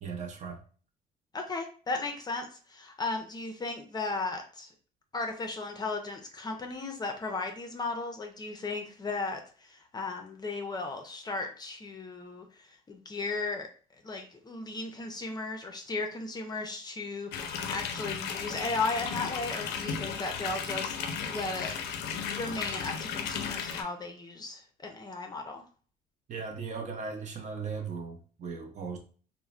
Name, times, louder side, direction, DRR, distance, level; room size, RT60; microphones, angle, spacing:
voice 1, 0.0-0.6 26.3-29.0, right 5 dB, 45° right, 2 dB, 0.6 m, -37 dB
voice 2, 1.3-4.7 5.1-13.7 14.0-21.7 22.4-25.6, left 3 dB, 25° left, 4 dB, 0.5 m, -36 dB
sound 1, 17.3-23.8, left 7 dB, 80° left, 0.5 m, -35 dB
3.0 x 2.0 x 2.4 m, 0.41 s
cardioid pair, 110°, 17 cm